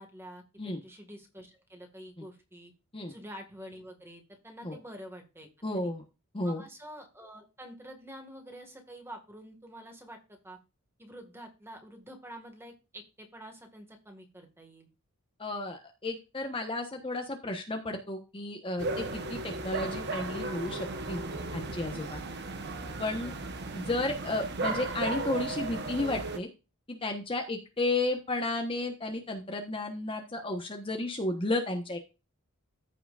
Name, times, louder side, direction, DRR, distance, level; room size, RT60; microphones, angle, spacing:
voice 1, 0.0-2.7 3.1-5.9 6.4-10.6 11.0-14.9 23.2-23.4, equal, 10° right, 3 dB, 1.9 m, -48 dB
voice 2, 5.6-6.0 6.3-6.6 15.4-21.2 21.5-22.2 23.0-23.3 23.7-26.5 26.9-32.0, left 2 dB, 25° left, 3 dB, 1.2 m, -33 dB
sound 1, 18.8-26.4, right 2 dB, 50° right, 1.1 m, -35 dB
14.5 x 6.0 x 2.5 m, 0.29 s
head